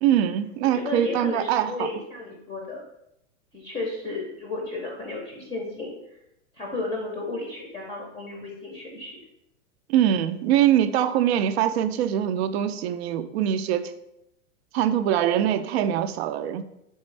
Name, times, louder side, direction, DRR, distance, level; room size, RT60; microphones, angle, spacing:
voice 1, 0.0-1.9 9.9-13.9 14.7-16.6, right 10 dB, 55° right, 11 dB, 0.4 m, -23 dB
voice 2, 0.6-2.8 3.5-6.2 6.5-9.2, left 2 dB, 15° left, -1 dB, 0.6 m, -33 dB
4.3 x 3.5 x 3.2 m, 0.83 s
hypercardioid pair, 130°, 38 cm